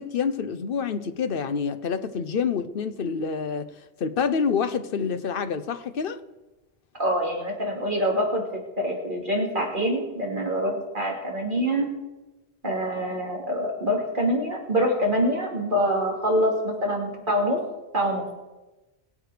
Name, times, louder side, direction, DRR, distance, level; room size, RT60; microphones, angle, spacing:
voice 1, 0.0-3.7 4.0-6.2, left 6 dB, 60° left, 12 dB, 0.9 m, -27 dB
voice 2, 7.0-8.4 8.8-11.9 12.6-17.6 17.9-18.2, equal, 50° right, -1 dB, 3.0 m, -25 dB
21.5 x 8.2 x 5.0 m, 1.1 s
omnidirectional pair, 1.1 m